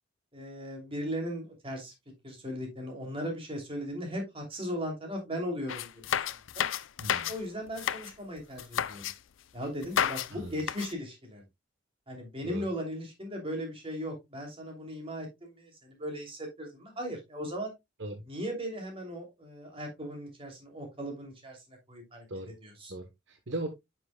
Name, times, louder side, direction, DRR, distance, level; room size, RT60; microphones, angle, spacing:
voice 1, 0.3-1.9 2.2-6.0 6.5-6.7 7.3-9.0 9.5-11.4 12.1-17.7 18.3-22.9, equal, 30° right, 2 dB, 2.8 m, -37 dB
sound 1, 5.7-7.4 7.7-8.1 8.6-9.1 9.8-10.3 10.6-10.9, left 9 dB, 80° left, 0.5 m, -31 dB
voice 2, 7.0-7.3 10.3-10.6 12.4-12.6 18.0-18.2 22.3-22.5 22.9-23.7, right 1 dB, 65° right, 6 dB, 1.0 m, -38 dB
9.8 x 6.0 x 2.2 m, 0.20 s
head